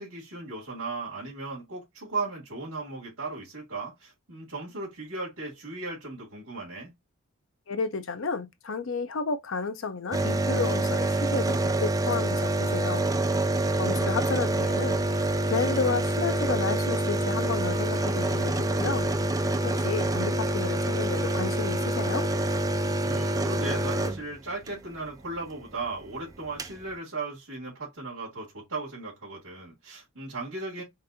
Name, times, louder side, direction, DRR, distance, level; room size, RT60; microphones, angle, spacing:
voice 1, 0.0-6.9 13.6-14.0 23.0-30.8, right 3 dB, 75° right, 2.8 m, -37 dB
voice 2, 7.7-13.0 13.8-19.1 19.6-22.3, left 4 dB, 60° left, 0.6 m, -32 dB
sound 1, 10.1-24.7 26.1-26.2 26.3-26.8, right 1 dB, 15° right, 0.3 m, -26 dB
5.1 x 2.5 x 2.7 m
head